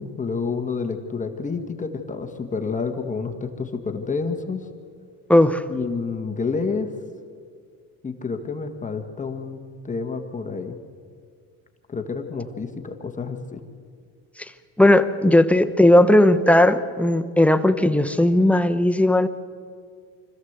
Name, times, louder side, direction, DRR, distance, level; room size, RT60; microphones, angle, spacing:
voice 1, 0.0-4.7 5.7-6.9 8.0-10.8 11.9-13.6, left 4 dB, 20° left, 5 dB, 1.5 m, -29 dB
voice 2, 5.3-5.6 14.8-19.3, left 1 dB, 5° left, 8 dB, 0.9 m, -16 dB
25.5 x 14.5 x 8.1 m, 2.1 s
cardioid pair, 125°, 35 cm